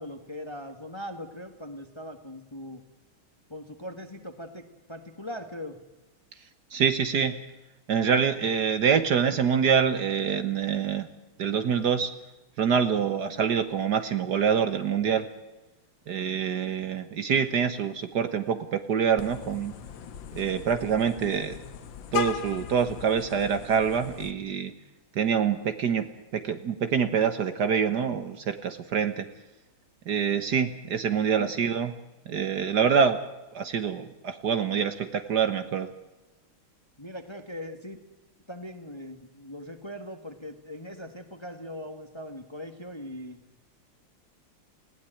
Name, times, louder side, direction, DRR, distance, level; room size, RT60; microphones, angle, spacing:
voice 1, 0.0-2.8 3.5-5.8 31.3-31.5 37.0-38.0 38.5-43.4, left 1 dB, 15° left, 7 dB, 1.4 m, -40 dB
voice 2, 6.7-7.4 7.9-11.1 11.4-12.1 12.6-15.3 16.1-19.7 20.3-21.6 22.1-24.7 25.1-29.3 30.1-31.9 32.3-33.2 33.5-35.9, right 7 dB, 60° right, 10 dB, 1.5 m, -25 dB
Vehicle horn car horn honking, 19.2-24.3, left 9 dB, 65° left, 1.9 m, -38 dB
20.0 x 16.5 x 9.0 m, 1.0 s
omnidirectional pair, 2.3 m